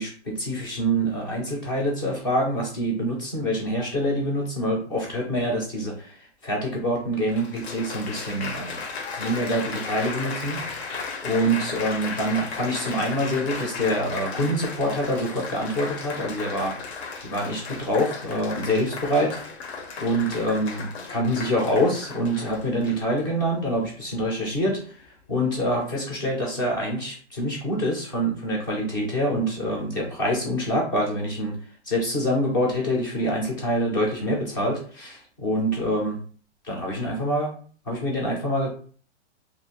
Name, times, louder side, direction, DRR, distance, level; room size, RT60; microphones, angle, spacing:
voice 1, 0.0-6.1 6.4-8.8 9.2-10.6 11.2-16.7 17.2-19.4 20.0-24.8 25.3-31.6 31.9-36.2 36.6-37.5 37.9-38.7, equal, 20° left, -1 dB, 0.5 m, -26 dB
Applause, 7.3-23.2 23.9-24.3, left 4 dB, 65° left, 0.7 m, -35 dB
2.6 x 2.5 x 2.9 m, 0.43 s
hypercardioid pair, 165°, 35 cm